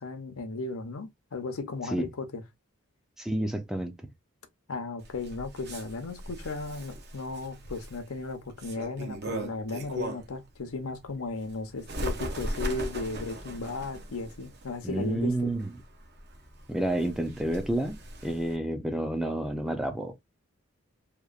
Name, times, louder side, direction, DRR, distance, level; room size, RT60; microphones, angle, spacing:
voice 1, 0.0-2.4 4.7-15.5, left 3 dB, 85° left, 0.6 m, -36 dB
voice 2, 3.2-3.9 14.8-15.7 16.7-20.1, right 1 dB, ahead, 0.3 m, -29 dB
Bird, 5.0-10.4 10.9-18.6, right 1 dB, 50° right, 0.6 m, -39 dB
2.9 x 2.1 x 2.3 m
head